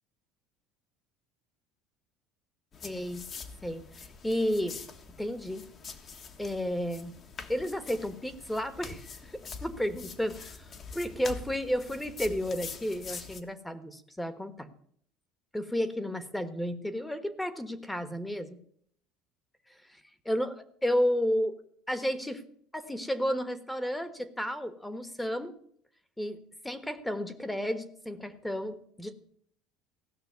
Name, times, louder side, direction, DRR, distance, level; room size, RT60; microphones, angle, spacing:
sound 1, 2.7-13.4, left 5 dB, 35° left, 1.5 m, -45 dB
voice 1, 2.8-3.2 3.6-4.8 5.2-5.6 6.4-7.1 7.5-9.3 9.6-10.4 10.9-14.7 15.5-18.6 20.2-21.6 21.9-22.5 22.7-25.5 26.2-26.4 26.6-29.1, equal, 5° left, 12 dB, 1.2 m, -32 dB
16.0 x 6.2 x 9.4 m, 0.65 s
supercardioid pair, 120°, 0 cm